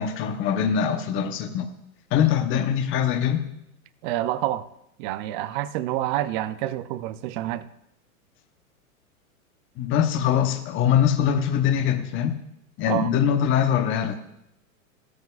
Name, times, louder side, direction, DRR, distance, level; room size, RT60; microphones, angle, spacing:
voice 1, 0.0-1.7 2.1-3.4 9.8-12.4 12.8-14.2, left 8 dB, 30° left, 0.8 m, -22 dB
voice 2, 4.0-4.7 5.0-7.7 12.8-13.1, right 13 dB, 35° right, 0.5 m, -28 dB
16.0 x 9.5 x 2.4 m
hypercardioid pair, 110°, 44 cm